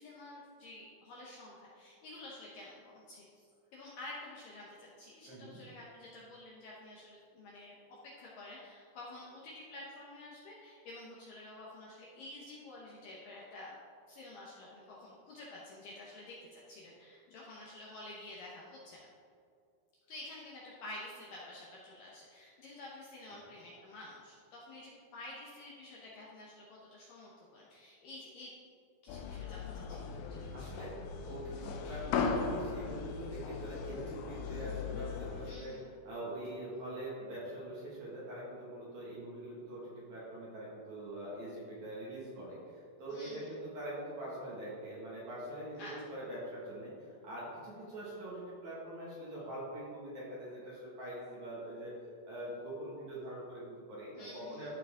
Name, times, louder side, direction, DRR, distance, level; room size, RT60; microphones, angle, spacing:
voice 1, 0.0-3.5 3.7-13.8 14.1-19.1 20.1-28.5 29.0-30.7 35.4-35.8 43.1-43.5 45.8-45.9 54.2-54.7, left 2 dB, 70° left, -5 dB, 2.1 m, -50 dB
voice 2, 5.3-5.6 23.3-23.4 30.5-31.0 31.2-35.7 36.1-52.0 52.2-54.7, right 1 dB, 50° right, -7 dB, 2.6 m, -44 dB
sound 1, 29.1-35.5, left 5 dB, 90° left, 2.2 m, -38 dB
13.5 x 4.6 x 3.7 m, 2.3 s
omnidirectional pair, 5.0 m